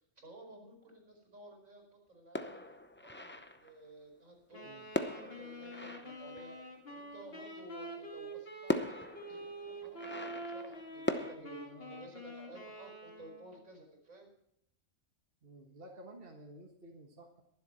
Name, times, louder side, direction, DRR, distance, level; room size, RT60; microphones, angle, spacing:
voice 1, 0.2-2.6 3.0-14.3, right 1 dB, 80° right, 2 dB, 5.2 m, -54 dB
sound 1, 2.4-3.8 4.9-6.9 8.1-8.2 8.7-11.3, left 1 dB, 15° left, 0.5 m, -39 dB
Wind instrument woodwind instrument, 4.5-13.6, right 1 dB, 45° left, 2.6 m, -46 dB
voice 2, 11.2-12.1 15.4-17.4, right 1 dB, 45° right, 1 dB, 1.8 m, -53 dB
22.0 x 7.7 x 4.3 m, 0.74 s
omnidirectional pair, 1.4 m